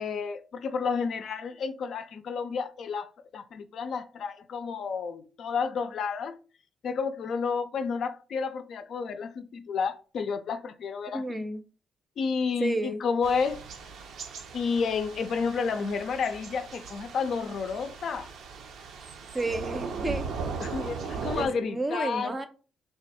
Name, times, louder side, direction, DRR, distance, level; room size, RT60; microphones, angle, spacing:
voice 1, 0.0-3.1 3.3-6.4 6.8-11.4 12.2-13.6 14.5-18.3 20.6-22.3, left 5 dB, 60° left, 0.4 m, -31 dB
voice 2, 11.1-11.6 12.6-13.1 19.3-20.3 21.3-22.5, right 2 dB, 20° right, 0.5 m, -31 dB
Thunder / Rain, 13.2-21.5, right 5 dB, 75° right, 0.6 m, -38 dB
3.3 x 2.3 x 4.2 m
cardioid pair, 90°, 0 cm